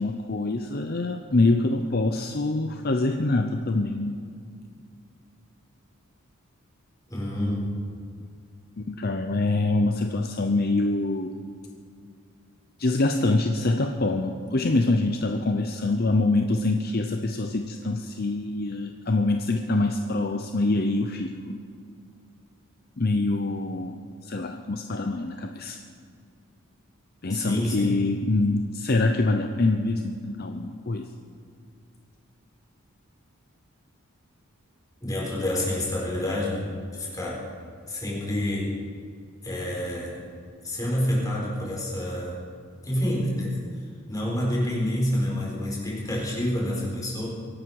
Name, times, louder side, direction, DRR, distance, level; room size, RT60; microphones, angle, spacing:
voice 1, 0.0-4.2 8.8-11.3 12.8-21.6 23.0-24.0 24.2-25.8 27.2-31.1, left 2 dB, 45° left, 5 dB, 0.7 m, -25 dB
voice 2, 7.1-7.8 27.3-28.0 35.0-37.5 37.9-38.8 39.4-40.2 40.6-42.4 42.8-43.6 44.1-47.3, left 1 dB, 15° left, -3 dB, 4.2 m, -28 dB
23.5 x 11.5 x 4.8 m, 2.3 s
head